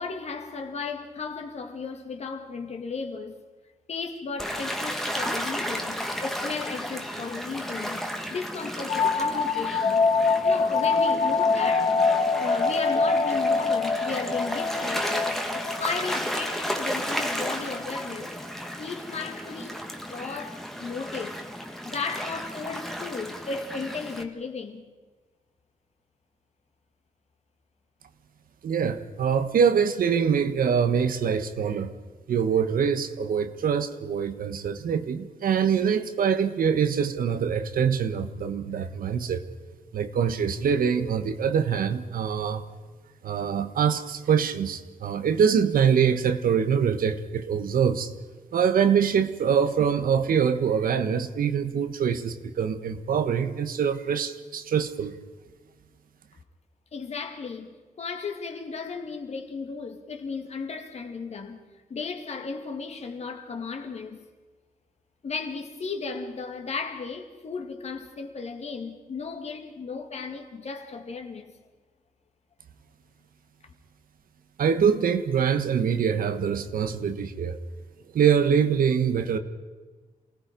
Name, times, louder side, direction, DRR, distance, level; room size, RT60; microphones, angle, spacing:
voice 1, 0.0-3.4 3.9-8.0 8.3-10.0 10.4-12.0 12.3-18.3 18.8-19.8 20.1-21.4 21.8-24.8 56.9-61.6 61.9-64.2 65.2-71.5, left 4 dB, 50° left, 2.2 m, -35 dB
Gull seagull / Waves surf, 4.4-24.2, equal, ahead, 1.6 m, -33 dB
sound 1, 8.9-18.3, left 4 dB, 75° left, 2.7 m, -25 dB
voice 2, 28.6-31.9 32.3-39.4 39.9-42.6 43.2-48.1 48.5-55.2 74.6-77.6 78.1-79.4, right 7 dB, 80° right, 1.3 m, -24 dB
28.0 x 18.0 x 5.2 m
wide cardioid pair, 140°, 14 cm